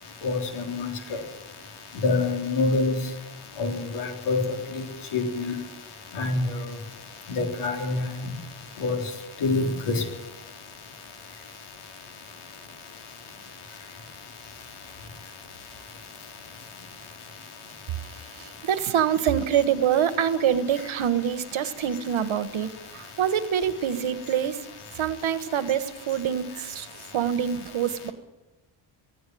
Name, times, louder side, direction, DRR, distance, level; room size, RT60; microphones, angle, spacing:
voice 1, 0.2-1.2 1.9-3.0 3.6-4.4 4.7-4.8 5.1-5.6 6.1-6.7 7.3-8.3 8.8-9.0 9.4-10.0, left 3 dB, 80° left, 2 dB, 4.0 m, -26 dB
voice 2, 18.1-24.6 24.9-26.9 27.1-28.1, right 9 dB, 70° right, 11 dB, 1.5 m, -25 dB
17.0 x 16.5 x 9.3 m, 1.1 s
cardioid pair, 95°, 50 cm